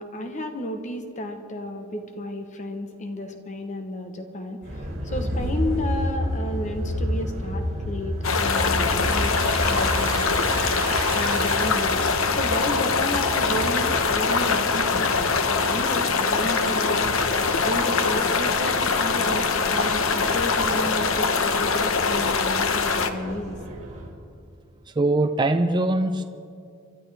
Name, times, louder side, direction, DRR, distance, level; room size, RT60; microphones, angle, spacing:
voice 1, 0.0-9.3 9.6-10.3 11.1-12.0 12.3-15.2 15.5-17.1 17.6-23.6, left 1 dB, 40° left, 6 dB, 1.0 m, -32 dB
sound 1, 4.6-24.1, equal, 40° right, 4.6 m, -32 dB
sound 2, 8.2-23.1, left 4 dB, 80° left, 0.9 m, -23 dB
Domestic sounds home sounds, 8.6-13.6, right 4 dB, 90° right, 1.6 m, -36 dB
voice 2, 25.0-26.2, right 2 dB, 20° right, 7 dB, 0.5 m, -21 dB
29.5 x 12.0 x 3.4 m, 2.4 s
head